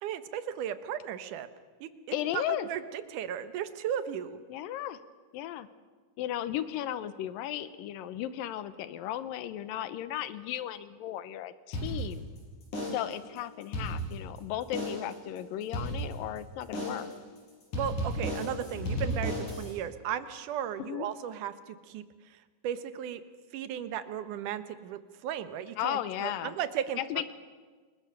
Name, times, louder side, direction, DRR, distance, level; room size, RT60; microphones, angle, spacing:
voice 1, 0.0-1.5 1.8-1.9 2.3-4.4 17.7-23.2 23.5-27.0, right 9 dB, 70° right, 11 dB, 2.5 m, -35 dB
voice 2, 2.1-2.7 4.5-5.0 5.3-5.7 6.2-12.3 12.9-17.1 20.8-21.1 25.8-26.5 27.0-27.3, left 12 dB, 85° left, 13 dB, 2.7 m, -35 dB
sound 1, 11.7-12.4 12.7-13.2 13.6-14.4 14.7-15.2 15.7-16.4 16.7-17.2 17.7-19.7, equal, 60° left, 7.5 m, -34 dB
28.5 x 21.5 x 6.8 m, 1.5 s
omnidirectional pair, 3.9 m